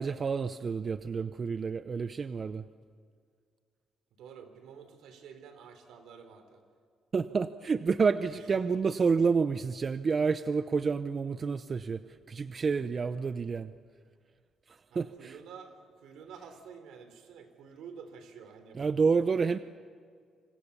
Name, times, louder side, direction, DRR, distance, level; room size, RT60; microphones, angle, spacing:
voice 1, 0.0-2.6 7.1-12.0 12.3-13.7 14.7-15.4 18.7-19.6, right 5 dB, 40° right, 12 dB, 0.7 m, -29 dB
voice 2, 4.2-6.6 8.4-8.5 14.9-18.8 19.2-19.6, right 6 dB, 85° right, 8 dB, 3.6 m, -50 dB
28.0 x 26.0 x 6.9 m, 2.1 s
cardioid pair, 90°, 0 cm